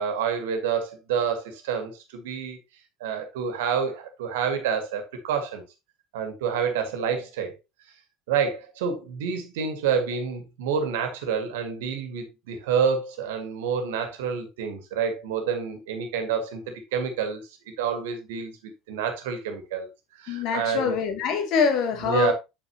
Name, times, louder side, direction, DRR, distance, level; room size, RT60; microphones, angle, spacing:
voice 1, 0.0-2.6 3.0-5.6 6.1-7.5 8.3-17.4 17.8-19.9 20.2-21.0 22.0-22.3, right 6 dB, 65° right, 1.9 m, -28 dB
voice 2, 20.3-22.3, left 6 dB, 50° left, 1.8 m, -24 dB
8.4 x 6.6 x 2.9 m
figure-of-eight pair, 65°, 0 cm